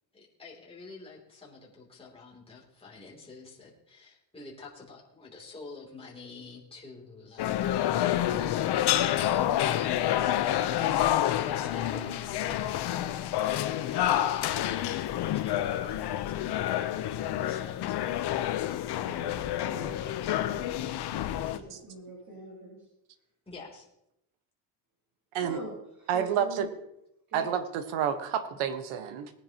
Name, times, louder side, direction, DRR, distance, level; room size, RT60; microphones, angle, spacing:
voice 1, 0.1-8.0 9.7-16.6 17.4-18.4 23.5-23.9, left 3 dB, 10° left, -4 dB, 3.1 m, -49 dB
sound 1, 7.4-21.6, left 12 dB, 55° left, 0.9 m, -28 dB
voice 2, 18.9-22.9 25.4-26.8 27.3-27.5, right 2 dB, 40° right, -4 dB, 4.6 m, -45 dB
voice 3, 26.1-26.7 27.3-29.3, right 8 dB, 85° right, 8 dB, 1.5 m, -29 dB
20.0 x 10.0 x 3.0 m, 0.81 s
cardioid pair, 140°, 47 cm